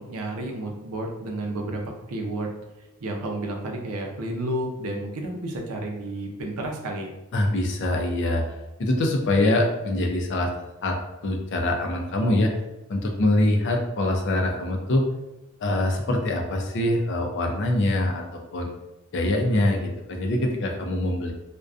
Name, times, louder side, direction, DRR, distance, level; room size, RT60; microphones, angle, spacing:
voice 1, 0.0-2.5 3.0-7.1, right 1 dB, 80° right, 1 dB, 0.5 m, -31 dB
voice 2, 7.3-8.4 8.8-11.0 11.2-12.5 12.9-15.0 15.6-18.7 19.1-21.3, left 1 dB, 55° left, 2 dB, 0.4 m, -24 dB
2.4 x 2.2 x 2.4 m, 0.97 s
head